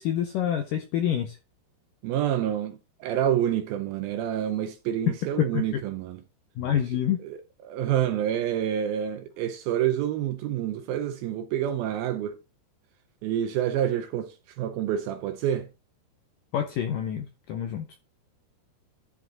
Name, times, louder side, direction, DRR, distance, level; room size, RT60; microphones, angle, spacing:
voice 1, 0.0-1.4 5.1-5.8 6.6-7.2 16.5-17.9, left 10 dB, 80° left, 1.9 m, -27 dB
voice 2, 2.0-6.2 7.2-12.4 13.2-15.7, right 10 dB, 80° right, 2.2 m, -28 dB
11.5 x 5.1 x 3.9 m
omnidirectional pair, 4.8 m